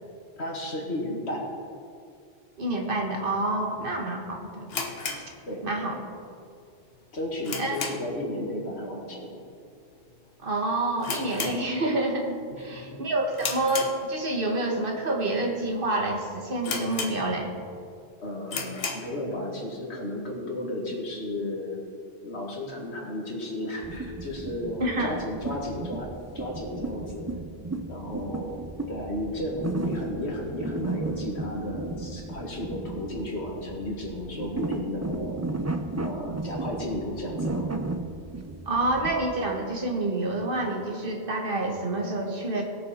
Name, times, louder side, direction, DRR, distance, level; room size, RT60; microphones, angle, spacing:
voice 1, 0.4-1.5 5.4-5.7 7.1-9.4 12.5-13.1 18.2-21.9 22.2-27.3 27.9-35.4 36.0-37.7, left 1 dB, 85° left, -1 dB, 2.2 m, -34 dB
voice 2, 2.6-4.7 5.6-6.0 7.6-7.8 10.4-17.5 24.8-25.1 38.6-42.6, right 2 dB, 55° right, 2 dB, 1.5 m, -28 dB
sound 1, 4.7-6.0 6.3-6.4 6.9-8.3 8.6-8.9 9.1-9.2 9.9-10.2 10.5-10.6 11.0-12.2 12.5-12.8 13.3-14.5 15.0-15.1 15.7-15.8 16.1-16.2 16.6-17.6 18.0-18.1 18.4-19.2, left 4 dB, 70° left, 1.3 m, -34 dB
sound 2, 23.8-39.3, right 2 dB, 25° right, 0.4 m, -34 dB
18.5 x 6.6 x 4.3 m, 2.3 s
omnidirectional pair, 1.1 m